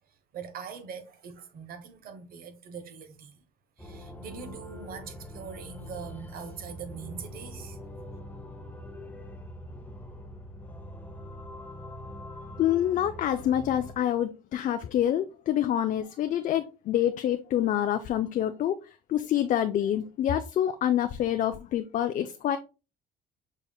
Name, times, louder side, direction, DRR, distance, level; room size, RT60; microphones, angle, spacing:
voice 1, 0.3-3.4 3.8-7.8, right 6 dB, 60° right, 0.9 m, -42 dB
sound 1, 3.8-13.9, left 1 dB, 10° left, 0.8 m, -43 dB
voice 2, 12.6-18.8 19.1-22.6, left 11 dB, 50° left, 0.4 m, -27 dB
5.4 x 3.4 x 2.3 m
cardioid pair, 110°, 17 cm